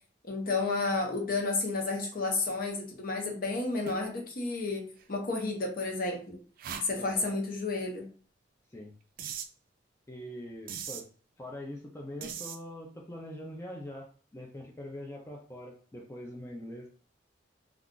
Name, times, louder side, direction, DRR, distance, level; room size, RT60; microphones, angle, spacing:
voice 1, 0.2-6.4 6.8-8.1, left 3 dB, 50° left, 1 dB, 0.8 m, -31 dB
sound 1, 3.9-4.2 5.0-5.1 6.6-6.9 9.2-9.5 10.7-11.0 12.2-12.6, right 7 dB, 50° right, 0.3 m, -39 dB
voice 2, 7.0-7.3 8.7-8.9 10.1-11.1 11.4-16.9, left 1 dB, 15° left, -1 dB, 0.4 m, -43 dB
2.4 x 2.3 x 3.7 m, 0.42 s
head